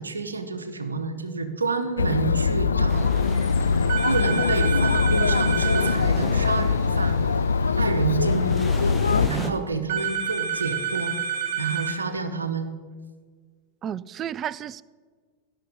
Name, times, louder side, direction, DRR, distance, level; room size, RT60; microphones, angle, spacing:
voice 1, 0.0-3.0 4.1-7.2 7.8-8.5 9.3-11.1 11.6-12.7, right 4 dB, 75° right, 9 dB, 1.0 m, -29 dB
Chatter, 2.0-9.3, left 5 dB, 75° left, 0.4 m, -22 dB
sound 1, 2.9-9.5, left 2 dB, 10° left, 1.1 m, -38 dB
sound 2, 3.9-6.0 9.9-12.0, right 7 dB, 45° right, 2.5 m, -28 dB
voice 2, 13.8-14.8, right 9 dB, 30° right, 20 dB, 0.3 m, -32 dB
16.0 x 6.1 x 5.4 m, 1.6 s
figure-of-eight pair, 90°, 0 cm